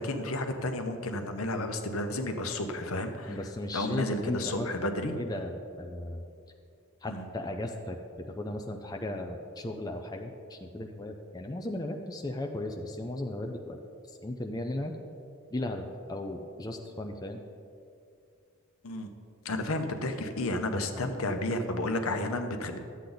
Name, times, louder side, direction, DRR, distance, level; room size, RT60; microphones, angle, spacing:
voice 1, 0.0-3.4 3.7-5.1 7.1-7.2 18.8-19.1 19.4-22.8, left 1 dB, 70° left, 6 dB, 0.9 m, -32 dB
voice 2, 3.3-4.9 5.2-6.2 7.0-8.0 8.4-13.8 14.1-14.9 15.5-17.4 20.8-21.1, left 1 dB, 15° left, 3 dB, 0.4 m, -36 dB
12.0 x 8.3 x 4.0 m, 2.4 s
head